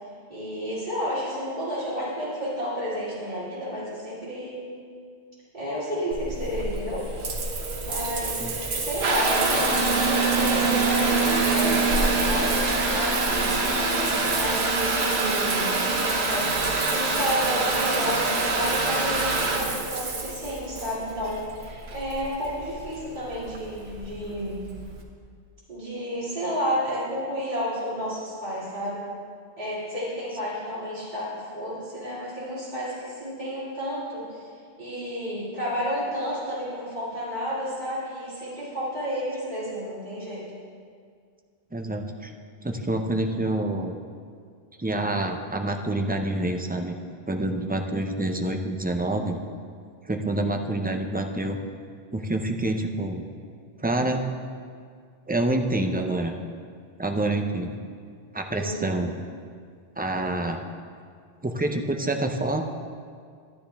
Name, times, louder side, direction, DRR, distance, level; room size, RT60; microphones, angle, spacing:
voice 1, 0.3-4.7 5.5-7.0 7.8-8.6 8.8-11.9 12.2-13.6 14.4-16.6 16.9-24.6 25.7-29.0 29.6-34.5 34.8-40.4 58.5-58.8, equal, 45° right, -10 dB, 2.9 m, -31 dB
Water tap faucet / Bathtub (filling or washing) / Trickle dribble, 6.1-25.0, right 3 dB, 75° right, 1.3 m, -25 dB
sound 1, 9.5-14.5, left 5 dB, 80° left, 1.1 m, -34 dB
voice 2, 41.7-42.3 42.6-44.0 44.8-47.0 47.3-49.4 50.1-51.6 52.1-53.2 53.8-54.2 55.3-56.3 57.0-57.8 58.3-59.2 60.0-60.6 61.4-62.6, right 1 dB, 15° right, 4 dB, 0.4 m, -27 dB
12.5 x 9.9 x 3.5 m, 2.1 s
omnidirectional pair, 1.1 m